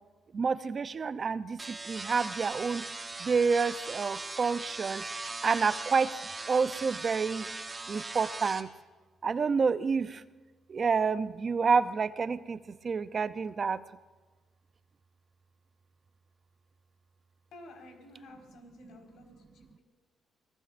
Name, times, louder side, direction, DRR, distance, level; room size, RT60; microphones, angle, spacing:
voice 1, 0.3-2.8 3.2-5.0 5.4-6.2 6.5-7.5 7.9-8.7 9.2-10.2 10.7-12.6 12.8-13.8, right 5 dB, 40° right, 13 dB, 0.6 m, -28 dB
Tesla Coil - Electricity, 1.6-8.6, right 3 dB, 25° right, 1.7 m, -39 dB
voice 2, 17.5-19.3 19.5-19.8, left 1 dB, 75° left, 2 dB, 4.8 m, -51 dB
26.0 x 19.0 x 2.6 m, 1.3 s
cardioid pair, 90°, 0 cm